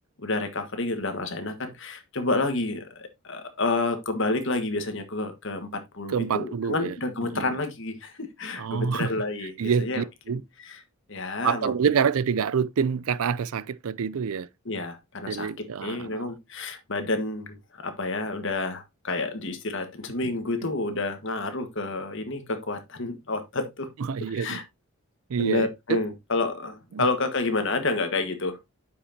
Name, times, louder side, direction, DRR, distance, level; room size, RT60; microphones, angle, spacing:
voice 1, 0.2-10.0 10.7-10.8 11.1-11.7 14.6-15.5 15.8-23.9 24.3-24.6 25.4-28.6, left 3 dB, 55° left, 1.6 m, -29 dB
voice 2, 6.1-7.0 7.2-7.5 8.6-9.2 9.6-10.4 11.4-14.5 15.3-16.2 20.6-20.7 24.0-24.6 25.3-26.0 26.9-27.0, right 6 dB, 75° right, 0.4 m, -27 dB
9.5 x 5.9 x 2.8 m
head